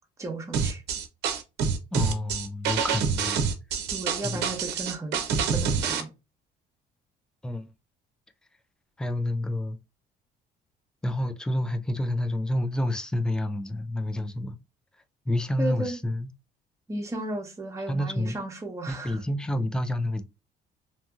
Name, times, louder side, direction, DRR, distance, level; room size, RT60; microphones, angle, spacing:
voice 1, 0.2-0.8 3.9-6.1 15.6-15.9 16.9-19.2, right 2 dB, 15° right, 0.9 m, -34 dB
sound 1, 0.5-6.0, right 6 dB, 75° right, 0.6 m, -27 dB
voice 2, 1.9-3.5 4.2-4.4 7.4-7.7 9.0-9.8 11.0-14.6 15.3-16.3 17.9-18.4 18.9-20.2, left 1 dB, 5° left, 0.3 m, -29 dB
2.8 x 2.7 x 2.3 m
cardioid pair, 110°, 17 cm